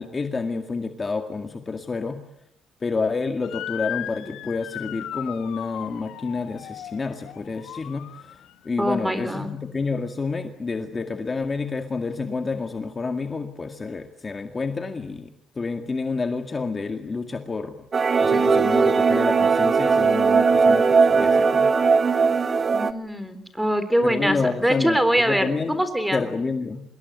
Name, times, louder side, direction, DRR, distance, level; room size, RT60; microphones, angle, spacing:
voice 1, 0.0-2.2 2.8-15.3 15.6-17.8 18.2-21.7 24.0-25.8 26.1-26.8, left 4 dB, 25° left, 6 dB, 2.0 m, -29 dB
Motor vehicle (road) / Siren, 3.4-8.7, left 12 dB, 75° left, 1.9 m, -36 dB
voice 2, 8.8-9.5 22.7-26.2, equal, 5° right, 12 dB, 3.7 m, -23 dB
sound 1, 17.9-22.9, right 5 dB, 30° right, 1.5 m, -18 dB
26.0 x 22.0 x 9.5 m, 0.73 s
cardioid pair, 130°, 0 cm